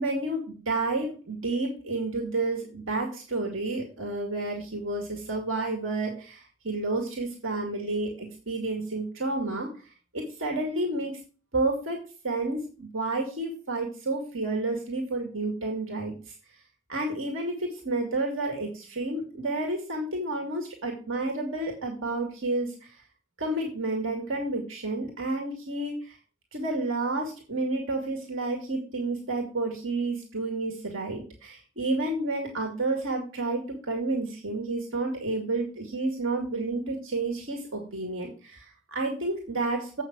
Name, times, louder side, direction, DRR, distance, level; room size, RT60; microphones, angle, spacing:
voice 1, 0.0-9.7 10.1-11.2 11.5-16.2 16.9-22.9 23.4-26.1 26.5-40.0, right 2 dB, 90° right, 1 dB, 2.2 m, -30 dB
8.0 x 6.0 x 6.1 m, 0.36 s
head